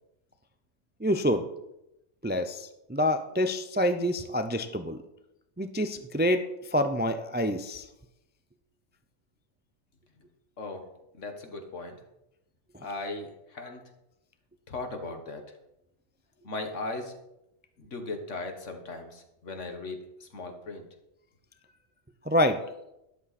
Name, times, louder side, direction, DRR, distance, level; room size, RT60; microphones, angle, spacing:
voice 1, 1.0-1.5 2.2-5.0 5.6-7.8 22.3-22.6, equal, 15° right, 8 dB, 0.4 m, -27 dB
voice 2, 11.2-12.0 12.8-13.8 14.7-15.4 16.4-17.1 17.8-20.8, left 2 dB, 75° left, 5 dB, 2.0 m, -37 dB
12.5 x 11.0 x 4.2 m, 0.86 s
omnidirectional pair, 1.3 m